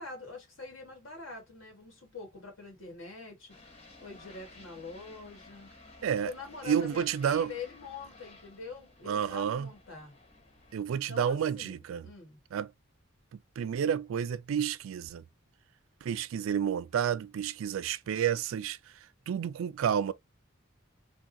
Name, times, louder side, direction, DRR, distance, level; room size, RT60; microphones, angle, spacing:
voice 1, 0.0-3.6 4.0-5.7 6.2-10.2 10.9-12.4, left 4 dB, 80° left, 1.7 m, -45 dB
sound 1, 3.5-10.7, left 2 dB, 30° left, 1.2 m, -55 dB
voice 2, 6.7-7.5 9.1-9.7 10.7-12.0 12.5-12.7 13.3-15.2 16.0-18.8 19.3-20.1, right 8 dB, 80° right, 0.3 m, -30 dB
3.5 x 2.3 x 2.6 m
head